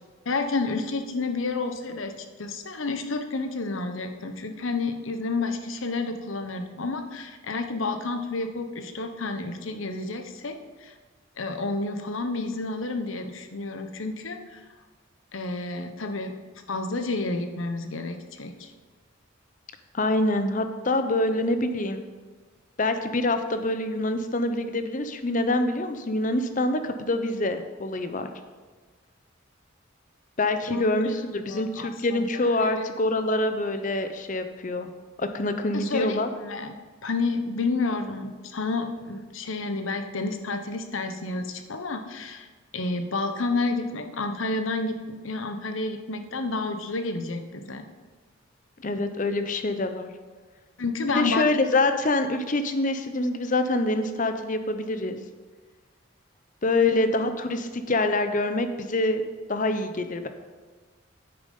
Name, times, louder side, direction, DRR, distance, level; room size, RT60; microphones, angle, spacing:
voice 1, 0.3-10.9 11.4-14.6 15.3-16.3 16.7-18.7 30.7-31.1 31.5-32.3 32.6-32.8 35.7-36.8 37.0-42.5 42.7-45.0 45.2-47.9 50.8-51.4 56.8-57.0, left 3 dB, 75° left, 7 dB, 0.9 m, -30 dB
voice 2, 19.9-22.0 22.8-28.3 30.4-34.9 35.2-36.3 48.8-50.1 51.1-55.2 56.6-59.2 59.5-60.3, left 2 dB, 40° left, 8 dB, 0.7 m, -25 dB
9.2 x 6.9 x 5.4 m, 1.4 s
head